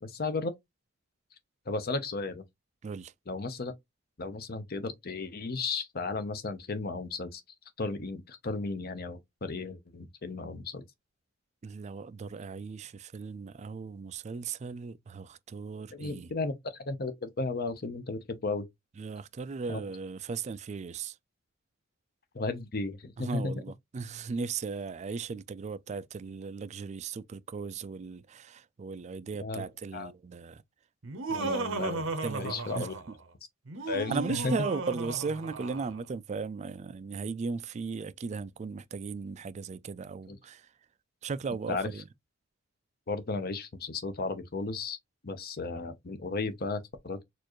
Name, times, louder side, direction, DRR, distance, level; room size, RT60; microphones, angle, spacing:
voice 1, 0.0-0.5 1.7-2.4 3.3-3.7 4.2-7.4 7.8-10.8 15.9-18.7 19.7-19.8 22.3-23.5 29.4-29.6 29.9-30.1 31.3-32.1 32.4-32.9 33.9-34.5 40.3-40.4 41.7-41.9 43.1-45.0 45.2-47.2, left 3 dB, 50° left, 0.8 m, -34 dB
voice 2, 2.8-3.1 11.6-16.3 19.0-21.2 23.2-30.6 31.3-31.6 32.2-32.9 34.1-40.7 41.2-42.0, right 4 dB, 35° right, 0.3 m, -37 dB
Laughter, 31.0-33.2 33.7-36.0, right 3 dB, 90° right, 0.9 m, -35 dB
4.3 x 2.5 x 3.0 m
head